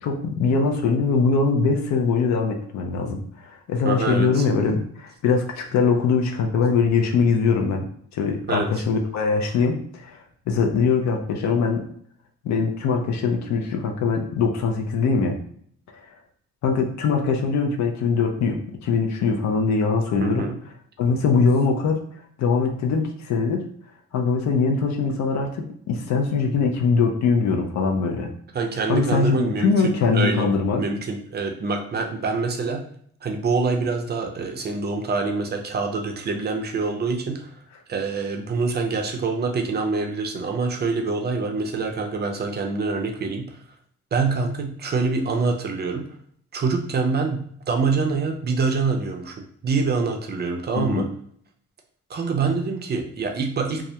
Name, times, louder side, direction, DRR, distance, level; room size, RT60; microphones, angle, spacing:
voice 1, 0.0-7.9 8.1-11.8 12.4-15.4 16.6-20.4 21.0-22.0 22.4-23.6 24.1-28.3 28.9-30.8 50.8-51.0, left 5 dB, 65° left, 3 dB, 0.5 m, -22 dB
voice 2, 3.8-4.4 8.5-8.7 20.2-20.5 28.5-30.5 30.8-32.8 33.2-37.5 37.9-43.6 44.1-46.1 46.5-49.4 49.6-51.1 52.1-53.8, right 4 dB, 35° right, 4 dB, 0.5 m, -25 dB
2.4 x 2.1 x 2.8 m, 0.62 s
cardioid pair, 90°, 30 cm